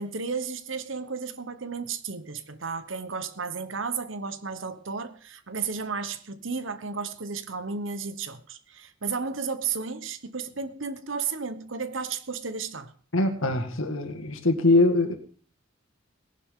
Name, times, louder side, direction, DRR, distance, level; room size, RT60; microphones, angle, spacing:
voice 1, 0.0-12.9, right 5 dB, 70° right, 1.1 m, -33 dB
voice 2, 13.1-15.1, left 2 dB, 90° left, 1.9 m, -22 dB
18.0 x 11.0 x 3.8 m
head